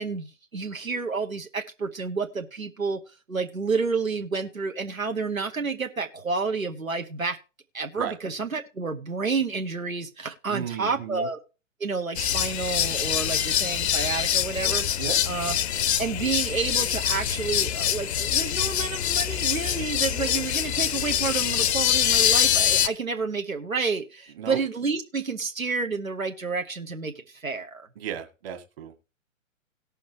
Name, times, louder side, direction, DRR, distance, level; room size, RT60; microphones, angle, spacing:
voice 1, 0.0-3.0 3.3-7.4 7.7-11.4 11.8-15.5 16.0-27.9, right 4 dB, 85° right, 5 dB, 1.3 m, -30 dB
voice 2, 10.5-11.3 15.0-15.2 24.3-24.6 28.0-29.0, right 9 dB, 45° right, 6 dB, 2.0 m, -34 dB
sound 1, 12.2-22.9, left 9 dB, 55° left, 0.8 m, -24 dB
18.0 x 6.4 x 3.3 m, 0.31 s
figure-of-eight pair, 115°, 40 cm